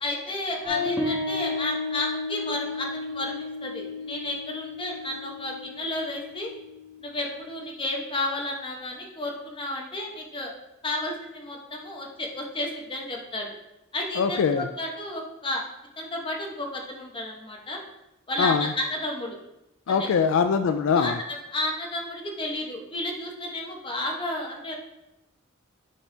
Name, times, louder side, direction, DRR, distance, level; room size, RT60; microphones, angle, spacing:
voice 1, 0.0-6.5 7.0-10.5 10.8-13.5 13.9-15.6 16.0-17.8 18.3-19.4 19.9-20.1 21.0-24.8, left 1 dB, 25° left, 0 dB, 1.1 m, -32 dB
sound 1, 0.7-7.5, left 3 dB, 10° right, 1.3 m, -33 dB
voice 2, 14.2-14.6 18.4-18.7 19.9-21.2, left 6 dB, 70° left, 8 dB, 0.3 m, -22 dB
8.3 x 4.3 x 3.4 m, 0.91 s
head